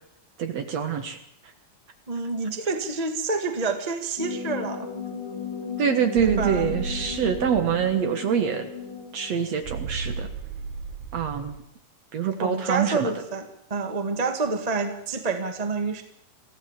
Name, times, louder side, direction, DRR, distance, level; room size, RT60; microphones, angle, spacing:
voice 1, 0.4-1.2 5.8-8.7 9.1-10.3 11.1-11.6 12.1-13.1, right 7 dB, 55° right, 7 dB, 2.1 m, -25 dB
voice 2, 2.1-4.9 6.2-6.7 12.4-16.0, right 4 dB, 25° right, 6 dB, 0.8 m, -28 dB
sound 1, 4.2-9.5, left 6 dB, 55° left, 4.2 m, -35 dB
sound 2, 6.2-8.0 9.6-11.6, right 5 dB, 90° right, 3.0 m, -34 dB
25.0 x 15.5 x 7.4 m, 0.73 s
omnidirectional pair, 4.4 m